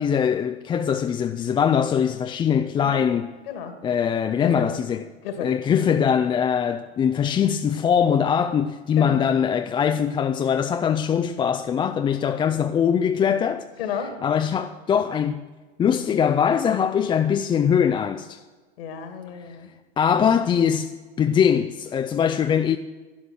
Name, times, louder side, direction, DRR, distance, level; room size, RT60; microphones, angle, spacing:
voice 1, 0.0-3.3 3.8-5.0 5.4-13.6 14.2-15.4 15.8-18.4 20.0-20.9 21.2-22.8, left 8 dB, 15° left, 0.4 m, -22 dB
voice 2, 13.8-14.2 18.8-19.7, left 7 dB, 65° left, 2.2 m, -32 dB
11.5 x 11.5 x 6.4 m
hypercardioid pair, 100°, 31 cm